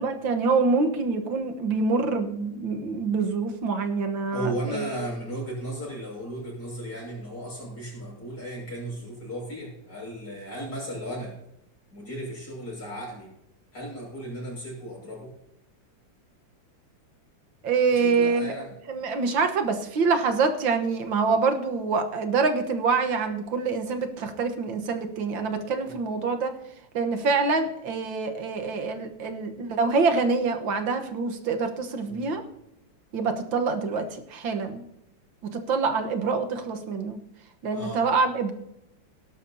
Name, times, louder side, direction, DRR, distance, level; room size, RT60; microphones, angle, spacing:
voice 1, 0.0-5.0 17.6-18.6 18.9-26.5 26.9-32.4 33.1-34.8 35.5-37.2 37.6-38.5, right 4 dB, 80° right, 7 dB, 2.0 m, -26 dB
voice 2, 4.3-11.3 11.9-13.3 13.7-15.3 18.0-18.7 25.8-25.9 32.0-32.3 37.7-38.0, right 1 dB, 60° left, -2 dB, 6.8 m, -35 dB
17.5 x 11.5 x 2.8 m, 0.82 s
omnidirectional pair, 2.1 m